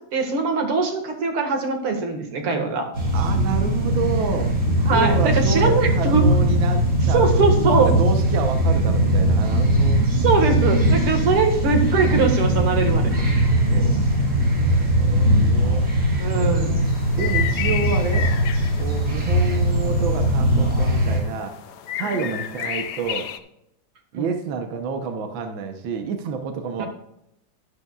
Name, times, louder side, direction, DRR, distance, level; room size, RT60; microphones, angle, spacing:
voice 1, 0.1-2.9 4.8-6.3 7.1-7.9 10.1-13.1 16.2-16.8 24.1-24.3 26.8-26.9, right 4 dB, 85° right, 4 dB, 2.7 m, -21 dB
sound 1, 2.9-21.2, right 1 dB, 40° right, 3.0 m, -20 dB
voice 2, 3.1-4.5 4.9-7.4 7.8-10.0 11.1-11.3 13.1-14.0 14.5-15.9 16.4-16.8 17.1-18.3 18.8-21.5 22.0-23.3 24.1-26.9, right 5 dB, 65° right, 5 dB, 1.7 m, -29 dB
sound 2, 16.8-23.4, left 10 dB, 65° left, 1.1 m, -32 dB
12.0 x 11.5 x 2.4 m, 0.80 s
omnidirectional pair, 2.4 m